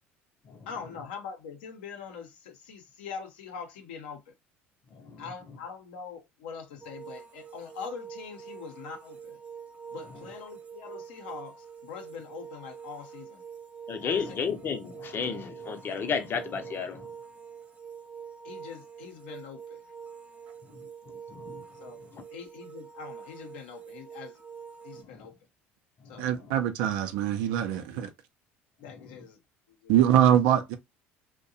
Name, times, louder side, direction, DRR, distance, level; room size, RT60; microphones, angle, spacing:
voice 1, 0.7-4.3 5.2-9.4 9.9-13.4 14.0-14.4 18.4-19.8 21.7-24.4 24.8-25.4 26.0-26.3 28.8-29.4 29.7-29.9, left 6 dB, 80° left, 0.7 m, -43 dB
voice 2, 4.9-5.2 13.9-17.1 20.7-20.8 21.3-21.6 22.1-22.2 25.0-25.3 26.0-26.5, left 6 dB, 40° left, 0.6 m, -33 dB
sound 1, 6.8-25.0, right 7 dB, 25° right, 0.4 m, -45 dB
voice 3, 26.2-28.1 29.9-30.8, right 10 dB, 75° right, 0.5 m, -23 dB
2.6 x 2.1 x 2.6 m
hypercardioid pair, 70°, 6 cm